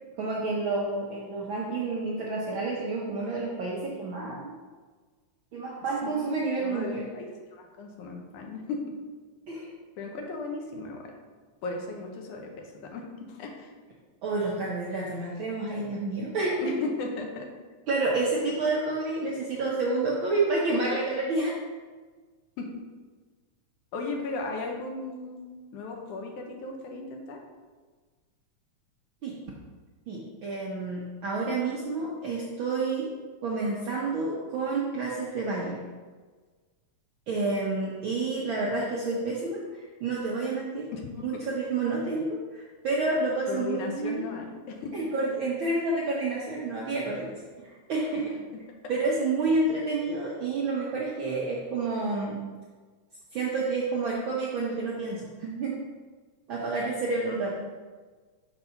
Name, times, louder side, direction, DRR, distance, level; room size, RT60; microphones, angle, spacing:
voice 1, 0.2-4.6 5.5-7.1 9.5-9.7 14.2-16.7 17.9-21.5 29.2-29.4 30.1-33.1 33.4-35.8 37.3-40.9 41.2-44.2 44.9-47.3 47.6-48.3 48.9-52.5 53.3-55.8 56.5-57.5, right 3 dB, 70° right, -4 dB, 1.2 m, -29 dB
voice 2, 6.3-8.8 10.0-11.1 11.6-13.7 16.6-17.5 22.6-22.7 23.9-27.4 40.9-41.4 43.5-45.0 48.3-48.4, left 3 dB, 85° left, 2 dB, 2.5 m, -36 dB
6.5 x 4.1 x 5.7 m, 1.4 s
omnidirectional pair, 3.4 m